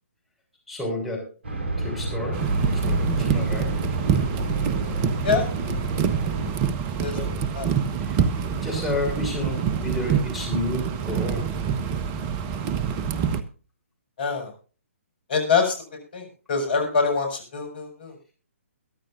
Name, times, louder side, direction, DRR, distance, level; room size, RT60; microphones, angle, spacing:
voice 1, 0.7-1.3 1.8-3.7 7.1-7.4 8.0-11.5, left 2 dB, ahead, -3 dB, 6.2 m, -31 dB
sound 1, 1.4-6.5, right 2 dB, 45° right, 7.3 m, -28 dB
sound 2, 2.3-13.4, right 7 dB, 25° right, 1.1 m, -26 dB
voice 2, 14.2-14.5 15.3-15.8 16.1-18.1, left 5 dB, 45° left, 5 dB, 6.7 m, -24 dB
22.5 x 11.5 x 2.6 m, 0.36 s
figure-of-eight pair, 135°, 7 cm